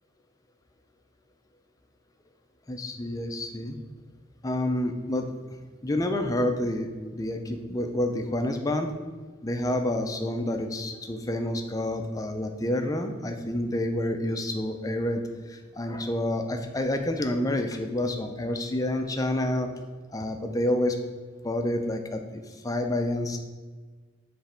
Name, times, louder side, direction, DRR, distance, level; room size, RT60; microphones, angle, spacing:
voice 1, 2.7-3.8 4.4-5.3 5.8-8.9 9.4-15.2 15.5-19.7 20.1-21.0 21.4-23.4, left 1 dB, 20° left, 5 dB, 0.5 m, -28 dB
7.2 x 3.3 x 4.3 m, 1.4 s
head